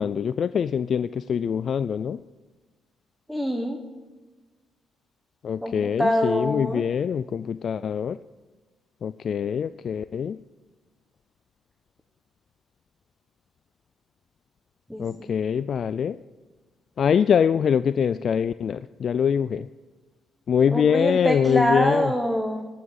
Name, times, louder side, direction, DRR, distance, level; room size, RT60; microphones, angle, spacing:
voice 1, 0.0-2.2 5.4-8.2 9.0-10.4 15.0-16.2 17.0-19.7 20.5-22.1, left 7 dB, 55° left, 14 dB, 0.3 m, -24 dB
voice 2, 3.3-3.8 5.6-6.8 14.9-15.3 20.7-22.7, equal, ahead, 3 dB, 1.3 m, -25 dB
17.5 x 6.2 x 7.2 m, 1.3 s
cardioid pair, 90°, 0 cm